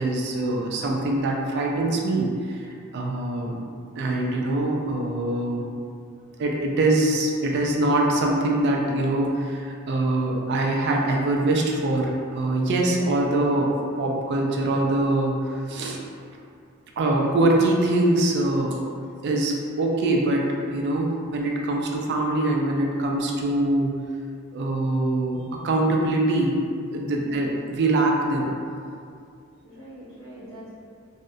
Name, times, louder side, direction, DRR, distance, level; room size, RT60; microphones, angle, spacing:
voice 1, 0.0-2.7 2.9-3.6 4.0-5.6 6.4-16.0 17.0-18.8 19.2-24.0 24.5-26.6 26.9-28.6, right 2 dB, 55° right, -1 dB, 0.3 m, -23 dB
voice 2, 27.1-27.4 29.6-30.7, equal, 75° left, -12 dB, 0.8 m, -43 dB
2.7 x 2.0 x 2.3 m, 2.4 s
head